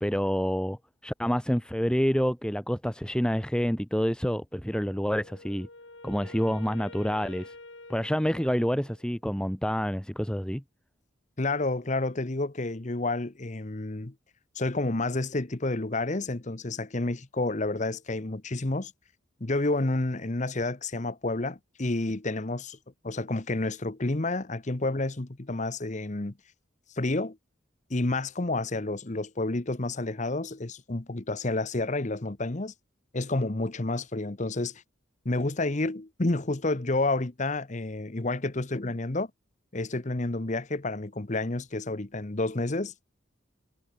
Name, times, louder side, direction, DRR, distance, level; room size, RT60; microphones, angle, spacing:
voice 1, 0.0-5.7 6.0-7.5 7.9-10.6, equal, 5° left, 1.6 m, -28 dB
Wind instrument woodwind instrument, 4.8-9.1, left 2 dB, 70° left, 3.6 m, -48 dB
voice 2, 11.4-14.1 14.6-18.9 19.4-22.8 23.0-26.3 27.0-27.4 27.9-32.7 33.1-34.8 35.2-39.3 39.7-42.9, left 2 dB, 35° left, 1.0 m, -30 dB
head